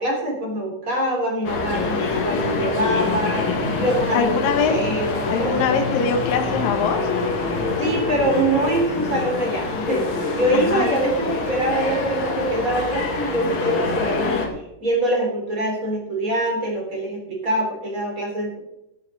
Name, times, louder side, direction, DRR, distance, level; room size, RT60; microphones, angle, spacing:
voice 1, 0.0-3.4 3.8-5.8 7.8-14.5 14.8-18.6, right 1 dB, 20° right, -1 dB, 3.9 m, -24 dB
sound 1, 1.4-14.5, left 3 dB, 55° left, 2.8 m, -25 dB
voice 2, 4.1-4.8 5.3-7.0 10.5-10.9, left 5 dB, 75° left, 4 dB, 2.7 m, -22 dB
13.5 x 11.0 x 3.9 m, 0.88 s
omnidirectional pair, 4.2 m